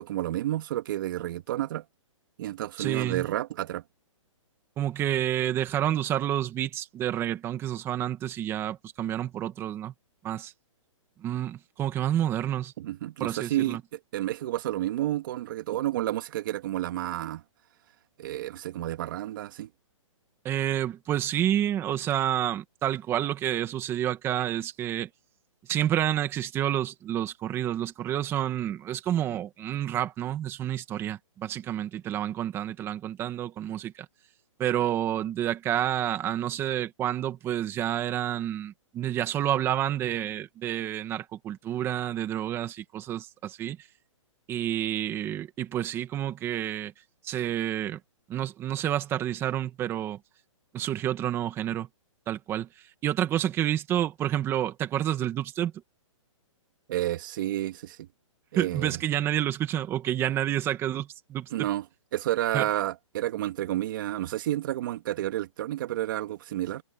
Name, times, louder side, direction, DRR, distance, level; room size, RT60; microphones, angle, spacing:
voice 1, 0.0-1.8 2.4-3.8 12.8-17.4 18.2-19.7 56.9-58.1 58.5-59.0 61.5-61.8 62.1-66.8, right 14 dB, 40° right, 2.1 m, -30 dB
voice 2, 2.8-3.3 4.8-9.9 10.2-10.5 11.2-12.7 13.2-13.8 20.4-25.1 25.7-34.1 34.6-43.9 44.5-46.9 47.2-48.0 48.3-50.2 50.7-51.9 52.3-52.7 53.0-55.7 58.6-61.7 62.5-62.7, right 11 dB, 15° right, 2.1 m, -29 dB
hypercardioid pair, 165°, 17 cm